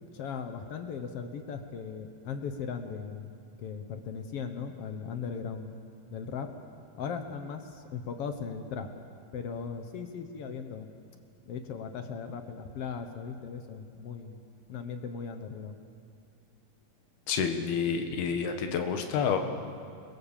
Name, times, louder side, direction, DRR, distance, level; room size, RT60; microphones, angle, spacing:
voice 1, 0.1-3.3 3.6-5.7 6.1-6.5 7.0-8.9 9.3-10.9 11.5-14.4 14.7-15.8, left 6 dB, 70° left, 7 dB, 1.4 m, -38 dB
voice 2, 17.3-19.4, left 6 dB, 90° left, 5 dB, 3.5 m, -29 dB
29.0 x 22.0 x 7.4 m, 2.4 s
omnidirectional pair, 4.3 m